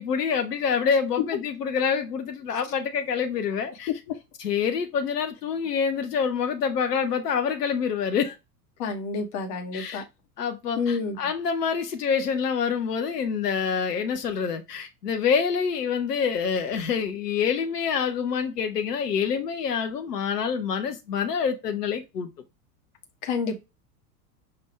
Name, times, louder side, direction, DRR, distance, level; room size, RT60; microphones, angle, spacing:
voice 1, 0.0-3.9 4.4-8.4 9.7-10.0 10.4-22.3, left 6 dB, 75° left, 0.8 m, -26 dB
voice 2, 8.8-10.0 10.8-11.2 23.2-23.6, left 4 dB, 45° left, 1.2 m, -29 dB
5.6 x 2.6 x 3.2 m
figure-of-eight pair, 85°, 49 cm